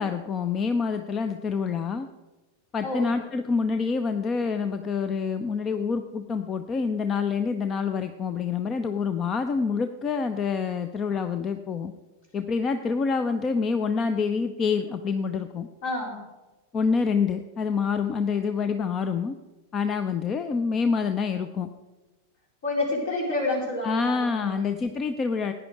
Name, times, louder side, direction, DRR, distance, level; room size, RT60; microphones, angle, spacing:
voice 1, 0.0-2.1 2.7-11.9 12.3-15.7 16.7-19.4 19.7-21.7 23.8-25.5, left 5 dB, 25° left, 9 dB, 0.7 m, -27 dB
voice 2, 2.8-3.1 15.8-16.2 22.6-24.8, left 2 dB, 55° left, 0 dB, 4.1 m, -29 dB
16.0 x 9.9 x 4.7 m, 1.1 s
figure-of-eight pair, 90°, 0 cm